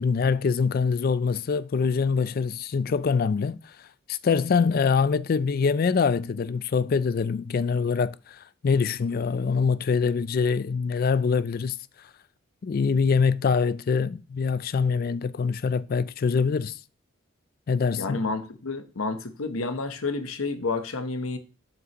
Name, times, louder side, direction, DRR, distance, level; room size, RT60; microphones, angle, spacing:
voice 1, 0.0-3.6 4.1-11.8 12.6-16.8 17.7-18.2, left 5 dB, 45° left, 0.3 m, -24 dB
voice 2, 18.0-21.4, left 3 dB, 90° left, 0.9 m, -30 dB
7.5 x 6.0 x 2.9 m
head